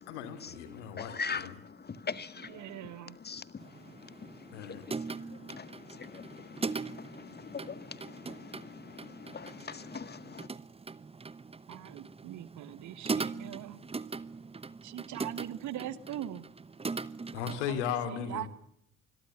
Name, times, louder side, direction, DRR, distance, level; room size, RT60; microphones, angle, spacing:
voice 1, 0.1-1.5 4.5-4.8 17.3-18.5, left 8 dB, 75° left, 2.7 m, -36 dB
voice 2, 1.0-2.6 3.3-3.6 4.0-10.5, left 5 dB, 25° left, 1.7 m, -42 dB
voice 3, 2.1-3.2 11.7-13.8 14.8-16.5 17.7-18.5, right 13 dB, 55° right, 1.5 m, -42 dB
sound 1, 3.6-17.7, right 4 dB, 15° right, 1.0 m, -41 dB
25.5 x 22.0 x 7.1 m
figure-of-eight pair, 50°, 36 cm